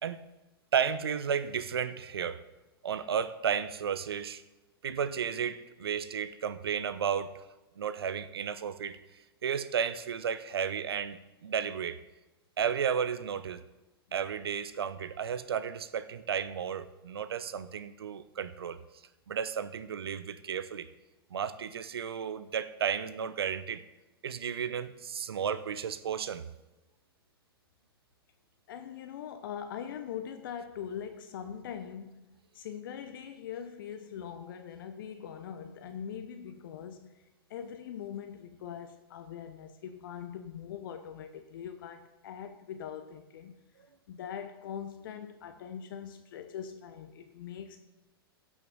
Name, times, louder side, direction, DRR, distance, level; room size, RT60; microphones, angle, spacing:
voice 1, 0.7-2.4 2.8-4.4 4.8-7.4 7.8-9.0 9.4-12.0 12.6-13.6 14.1-18.8 19.3-20.9 21.3-23.8 24.2-26.5, right 7 dB, 75° right, 0.8 m, -33 dB
voice 2, 28.7-37.2 37.5-43.6 44.1-47.8, left 8 dB, 60° left, 0.9 m, -42 dB
16.0 x 6.2 x 5.4 m
hypercardioid pair, 110°, 13 cm